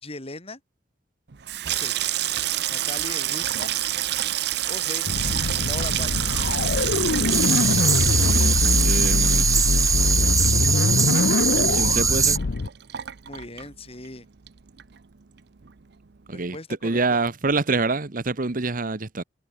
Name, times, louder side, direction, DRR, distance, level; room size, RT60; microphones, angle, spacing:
voice 1, 0.0-0.6 1.7-1.9 2.7-3.8 4.7-5.1 5.6-6.3 13.3-14.3 16.3-17.2, left 2 dB, 35° left, 4.1 m, -38 dB
Water tap faucet / Sink (filling or washing), 1.3-14.2 14.5-15.1 15.4-15.7, right 12 dB, 65° right, 0.7 m, -28 dB
sound 1, 5.1-12.7, left 3 dB, 70° left, 0.6 m, -23 dB
sound 2, 7.3-12.4, right 6 dB, 20° right, 1.1 m, -22 dB
voice 2, 8.8-9.5 11.7-12.4 16.3-16.6 16.8-19.2, right 3 dB, 50° right, 1.1 m, -26 dB
head